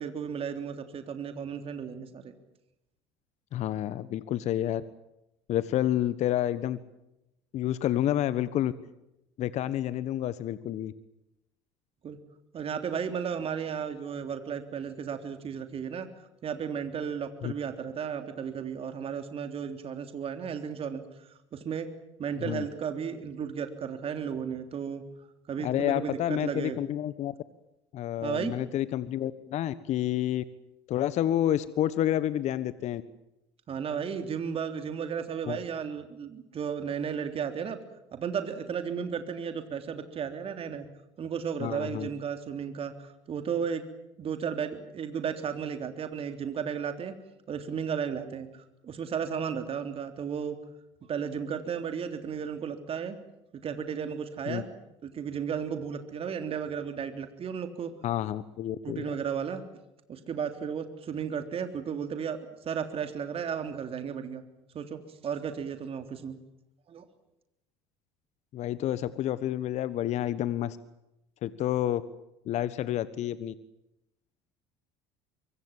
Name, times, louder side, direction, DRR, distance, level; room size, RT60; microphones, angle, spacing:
voice 1, 0.0-2.3 12.0-12.2 12.5-21.9 22.2-25.0 25.5-26.8 28.2-28.5 33.7-37.8 38.1-40.9 41.2-43.8 44.2-47.1 47.5-50.6 51.1-53.2 53.6-54.6 55.0-57.9 58.8-59.6 60.1-64.4 64.7-66.4 66.9-67.0, right 7 dB, 45° right, 7 dB, 3.4 m, -34 dB
voice 2, 3.5-4.8 5.5-6.8 7.5-8.7 9.4-10.9 17.4-17.5 22.4-22.6 25.6-27.3 27.9-30.4 30.9-33.0 35.5-35.6 41.6-42.1 54.5-54.6 58.0-59.1 68.5-70.8 71.4-72.0 72.5-73.5, left 12 dB, 55° left, 15 dB, 1.4 m, -29 dB
25.0 x 24.5 x 7.5 m, 0.88 s
hypercardioid pair, 70°, 14 cm